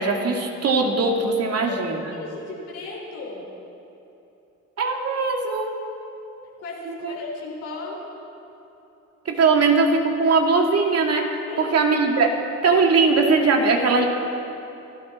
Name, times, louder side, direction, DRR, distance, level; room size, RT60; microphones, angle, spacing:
voice 1, 0.0-2.0 4.8-5.8 6.9-7.2 9.3-12.3 12.6-14.1, right 4 dB, 55° right, 2 dB, 2.3 m, -20 dB
voice 2, 1.8-3.5 6.6-8.0 11.4-11.8, left 2 dB, 85° left, -4 dB, 3.8 m, -35 dB
27.5 x 12.0 x 4.3 m, 2.9 s
cardioid pair, 90°, 30 cm